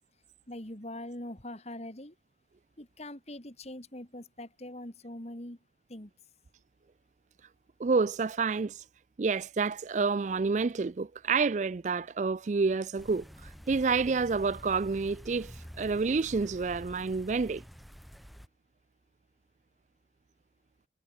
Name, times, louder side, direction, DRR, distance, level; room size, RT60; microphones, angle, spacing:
voice 1, 0.5-2.1 2.8-5.6 5.9-6.1, left 1 dB, 35° left, 2.9 m, -42 dB
voice 2, 7.8-8.8 9.2-17.6, right 4 dB, 40° right, 0.4 m, -29 dB
sound 1, 13.0-18.5, equal, ahead, 3.9 m, -48 dB
head